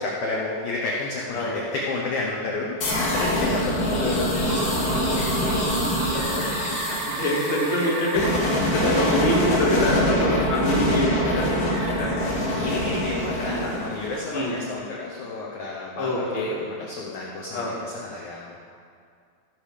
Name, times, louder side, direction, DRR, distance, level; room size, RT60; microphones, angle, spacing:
voice 1, 0.0-5.8 7.7-7.9 8.7-8.9 10.2-10.4 12.3-18.6, left 3 dB, 75° left, -3 dB, 1.8 m, -31 dB
sound 1, 2.8-14.6, left 1 dB, 45° left, 1.9 m, -25 dB
sound 2, 4.5-12.3, right 5 dB, 80° right, 2.9 m, -36 dB
voice 2, 6.1-6.5 6.7-8.3 8.7-12.1 13.4-13.6 14.3-14.5 16.0-16.6 17.5-17.7, left 1 dB, 25° left, -6 dB, 1.6 m, -25 dB
Bird, 6.1-9.9 11.6-13.4, right 1 dB, 65° right, 3.0 m, -38 dB
15.5 x 6.8 x 5.0 m, 2.3 s
omnidirectional pair, 4.9 m